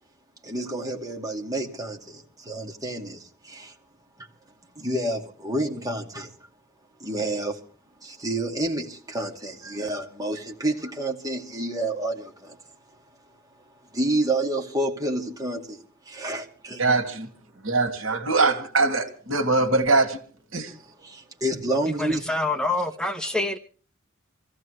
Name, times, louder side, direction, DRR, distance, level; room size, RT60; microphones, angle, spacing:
voice 1, 0.4-3.7 4.8-6.3 7.0-7.6 8.0-12.6 13.9-15.8 16.1-16.8 21.0-22.3, right 1 dB, 20° right, 2.4 m, -29 dB
voice 2, 16.8-17.3 17.6-20.2 20.5-20.7, right 3 dB, 85° right, 2.3 m, -22 dB
voice 3, 21.9-23.6, left 2 dB, 5° left, 1.1 m, -26 dB
26.0 x 15.5 x 3.2 m
head